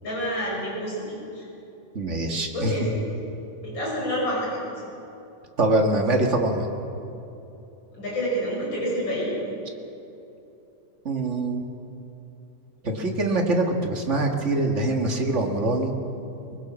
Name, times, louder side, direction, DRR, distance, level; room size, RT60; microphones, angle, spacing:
voice 1, 0.0-1.4 2.3-3.0 3.6-4.6 7.9-9.4, equal, 35° left, -4 dB, 6.9 m, -28 dB
voice 2, 1.9-2.9 5.6-6.7 11.0-11.6 12.8-15.9, right 2 dB, 30° right, 2 dB, 1.4 m, -24 dB
22.5 x 21.0 x 6.2 m, 2.8 s
omnidirectional pair, 3.6 m